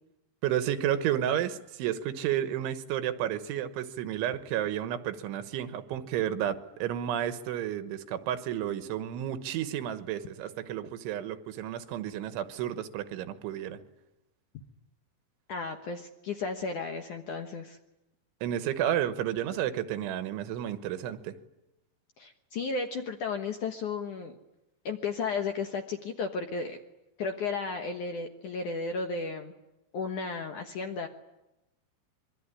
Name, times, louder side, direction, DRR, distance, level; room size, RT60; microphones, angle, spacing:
voice 1, 0.4-13.8 18.4-21.4, right 11 dB, 85° right, 10 dB, 3.7 m, -31 dB
voice 2, 15.5-17.8 22.2-24.3 24.9-26.8 27.2-29.5 29.9-31.1, left 4 dB, 65° left, 5 dB, 2.0 m, -34 dB
25.5 x 23.5 x 9.9 m, 0.95 s
omnidirectional pair, 5.3 m